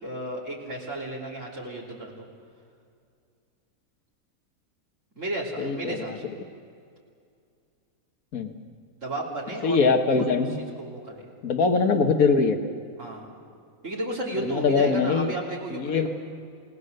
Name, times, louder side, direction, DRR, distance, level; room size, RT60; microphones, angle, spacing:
voice 1, 0.0-2.3 5.2-6.2 9.0-9.9 10.2-10.5 10.8-11.3 13.0-13.3 13.8-16.1, right 1 dB, 60° right, -3 dB, 3.8 m, -33 dB
voice 2, 5.6-6.2 8.3-8.5 9.6-10.6 11.4-12.6 14.4-15.3 15.7-16.1, left 4 dB, 75° left, 6 dB, 1.8 m, -22 dB
28.5 x 18.5 x 6.7 m, 2.4 s
omnidirectional pair, 1.5 m